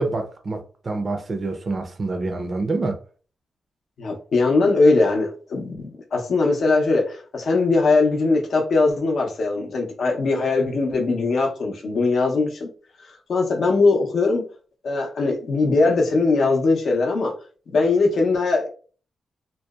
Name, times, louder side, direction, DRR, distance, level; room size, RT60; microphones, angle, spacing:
voice 1, 0.0-3.0, right 3 dB, 40° right, 0.4 m, -26 dB
voice 2, 4.0-12.7 13.1-14.4 14.8-17.3 17.7-18.7, left 3 dB, 70° left, 0.6 m, -20 dB
2.7 x 2.0 x 2.2 m
cardioid pair, 80°, 0 cm